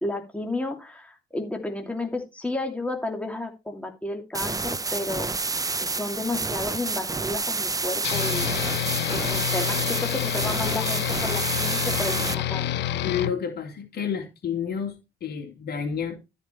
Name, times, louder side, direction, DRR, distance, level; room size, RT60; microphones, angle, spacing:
voice 1, 0.0-5.3 5.8-8.5 9.1-12.7, left 2 dB, 5° left, 2.8 m, -32 dB
sound 1, 4.3-12.3, right 3 dB, 20° right, 0.7 m, -29 dB
sound 2, 8.0-13.3, left 11 dB, 80° left, 0.8 m, -28 dB
voice 2, 13.0-14.9 15.2-16.2, left 7 dB, 65° left, 3.1 m, -30 dB
13.0 x 5.2 x 4.5 m
supercardioid pair, 70°, 18 cm